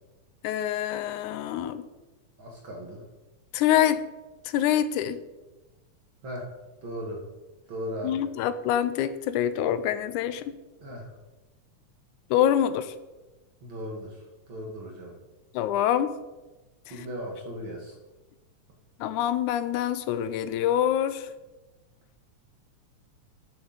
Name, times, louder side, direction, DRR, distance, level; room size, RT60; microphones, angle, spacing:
voice 1, 0.4-1.9 3.5-4.0 4.4-5.2 8.0-10.6 12.3-12.9 15.5-16.1 16.9-17.1 19.0-21.3, left 10 dB, 90° left, 13 dB, 2.1 m, -25 dB
voice 2, 2.4-3.0 6.2-6.5 6.8-7.2 7.7-8.2 10.8-11.1 13.6-14.2 14.5-15.2 16.9-17.9, equal, 50° right, 0 dB, 2.1 m, -37 dB
12.5 x 7.9 x 4.0 m, 1.1 s
omnidirectional pair, 3.4 m